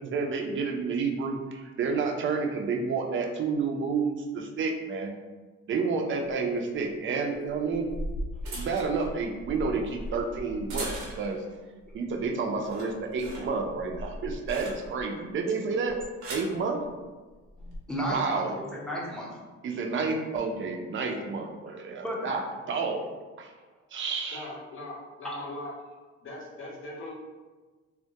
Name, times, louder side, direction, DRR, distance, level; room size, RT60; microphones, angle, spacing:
voice 1, 0.0-5.1 5.7-7.9 8.4-11.4 11.9-16.0 16.3-16.8 18.1-18.5 19.6-23.0 23.4-23.5 23.9-24.5, right 4 dB, 40° right, 2 dB, 0.4 m, -30 dB
sound 1, 7.5-11.5 11.9-12.3 12.6-15.1 15.9-16.6 17.5-17.8, equal, 85° right, 0.7 m, -38 dB
voice 2, 17.6-19.3 22.0-22.3, equal, ahead, -4 dB, 0.6 m, -34 dB
voice 3, 24.3-25.7 26.2-27.1, left 1 dB, 45° left, -2 dB, 0.6 m, -40 dB
2.2 x 2.1 x 2.7 m, 1.3 s
cardioid pair, 90°, 30 cm